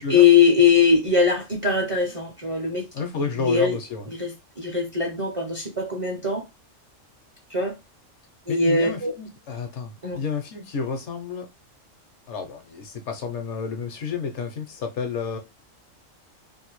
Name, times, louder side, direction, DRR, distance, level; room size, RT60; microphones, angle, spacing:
voice 1, 0.1-2.8 3.2-3.8 4.1-6.4 7.5-7.8 8.5-9.1 10.0-10.2, left 5 dB, 35° right, 0.5 m, -21 dB
voice 2, 2.9-4.1 8.5-11.5 12.3-15.4, left 5 dB, 70° left, 0.9 m, -30 dB
2.6 x 2.6 x 3.0 m
omnidirectional pair, 1.3 m